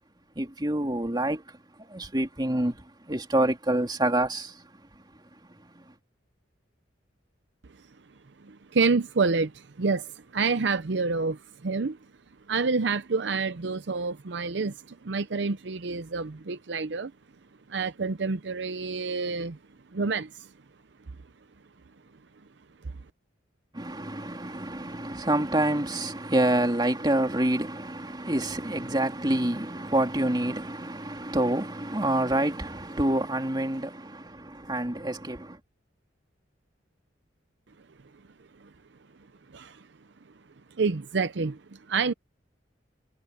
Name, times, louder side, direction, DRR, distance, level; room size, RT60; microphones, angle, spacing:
voice 1, 0.4-4.7 5.5-5.9 23.7-35.6, right 1 dB, 25° right, 2.8 m, -27 dB
voice 2, 8.4-12.0 12.5-17.1 17.7-19.6 19.9-20.5 39.5-39.8 40.8-42.1, right 4 dB, 65° right, 0.6 m, -28 dB
head